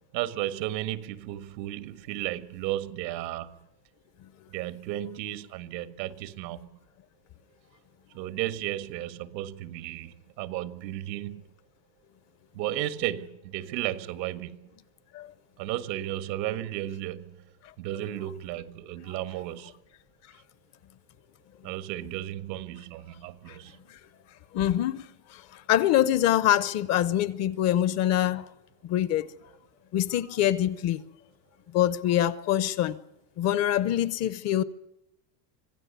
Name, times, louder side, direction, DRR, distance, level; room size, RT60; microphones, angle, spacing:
voice 1, 0.1-3.6 4.5-6.8 8.1-11.4 12.5-14.7 15.6-17.4 17.8-19.7 21.6-23.8, right 13 dB, 85° right, 1.7 m, -34 dB
voice 2, 24.5-28.5 28.8-29.3 29.9-31.0 31.7-33.0 33.4-34.6, left 12 dB, 30° left, 0.7 m, -25 dB
25.5 x 16.0 x 8.2 m
supercardioid pair, 155°, 50 cm